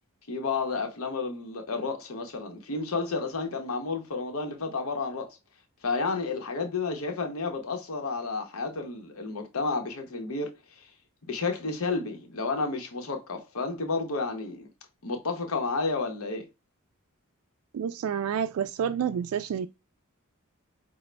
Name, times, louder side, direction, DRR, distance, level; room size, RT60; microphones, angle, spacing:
voice 1, 0.3-5.4 5.8-10.9 11.3-14.7 15.0-16.5, left 4 dB, 75° left, 0.8 m, -31 dB
voice 2, 17.7-19.7, right 8 dB, 80° right, 0.3 m, -29 dB
4.9 x 2.1 x 3.2 m
head